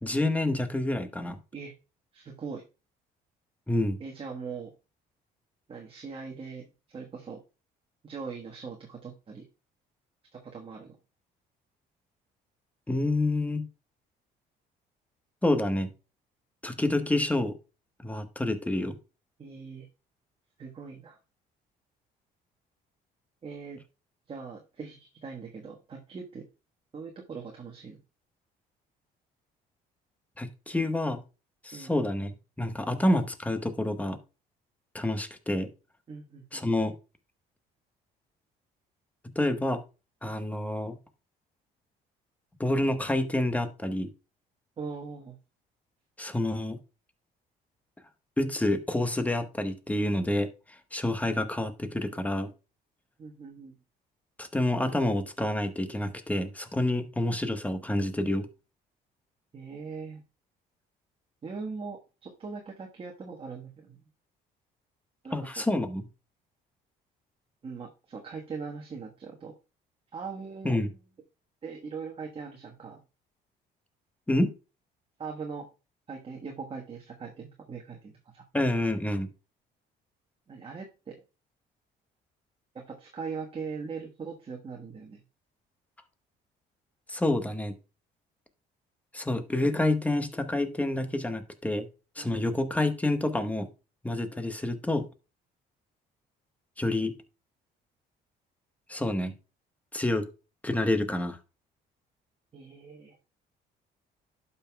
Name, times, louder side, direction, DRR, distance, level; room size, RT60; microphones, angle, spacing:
voice 1, 0.0-1.4 3.7-4.0 12.9-13.7 15.4-15.9 16.6-17.6 18.0-19.0 30.4-31.2 31.6-32.3 32.6-34.2 34.9-35.7 36.5-36.9 39.3-39.8 40.2-41.0 42.6-44.1 46.2-46.8 48.4-52.5 54.4-58.5 65.3-66.1 70.6-70.9 74.3-74.5 78.5-79.3 87.1-87.7 89.1-91.9 92.2-93.7 94.0-95.1 96.8-97.1 98.9-99.3 99.9-100.3 100.6-101.4, left 1 dB, 10° left, 9 dB, 1.1 m, -28 dB
voice 2, 2.1-2.6 4.0-4.7 5.7-7.4 8.0-9.4 10.3-11.0 19.4-19.9 20.6-21.2 23.4-23.8 24.3-26.5 26.9-28.0 31.7-32.0 36.1-36.7 44.8-45.4 53.2-53.8 59.5-60.2 61.4-64.0 65.2-65.7 67.6-69.5 70.1-70.9 71.6-73.0 75.2-75.7 76.1-78.4 80.5-81.2 82.7-85.2 92.2-92.5 102.5-103.2, right 5 dB, 35° right, 0 dB, 1.3 m, -41 dB
11.5 x 5.6 x 2.2 m, 0.30 s
cardioid pair, 110°, 17 cm